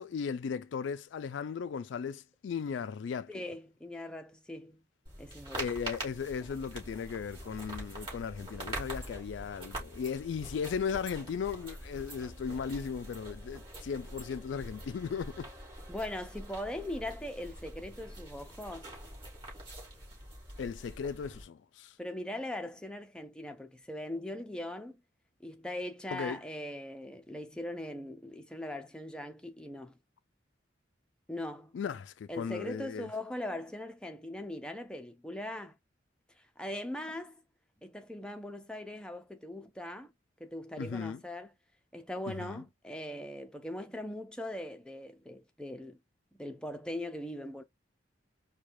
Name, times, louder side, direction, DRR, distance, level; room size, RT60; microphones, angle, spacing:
voice 1, 0.0-3.4 5.6-15.5 20.6-21.9 26.1-26.4 31.7-33.1 40.8-41.2 42.3-42.6, left 6 dB, 75° left, 0.3 m, -37 dB
voice 2, 3.3-4.8 5.2-5.7 15.9-18.9 22.0-25.0 25.4-30.0 31.3-31.7 32.3-35.8 36.6-37.4 37.8-40.1 40.4-41.5 41.9-46.0 46.3-47.6, left 1 dB, 5° left, 0.5 m, -40 dB
sound 1, 5.0-21.4, right 1 dB, 25° right, 2.7 m, -44 dB
4.7 x 2.2 x 2.5 m
head